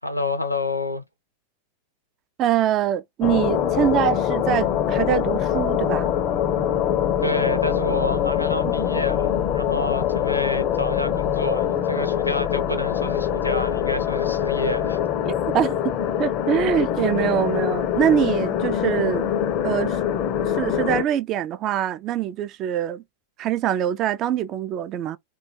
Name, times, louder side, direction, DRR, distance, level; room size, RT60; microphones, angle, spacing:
voice 1, 0.0-1.0 7.2-15.0, left 2 dB, 90° left, 0.7 m, -28 dB
voice 2, 2.4-6.1 8.6-8.9 15.3-15.9 16.2-19.3 19.6-20.0 20.4-23.0 23.4-25.2, right 10 dB, 35° right, 0.3 m, -24 dB
sound 1, 3.2-21.0, left 10 dB, 35° left, 0.4 m, -24 dB
2.2 x 2.2 x 3.0 m
figure-of-eight pair, 90°, 0 cm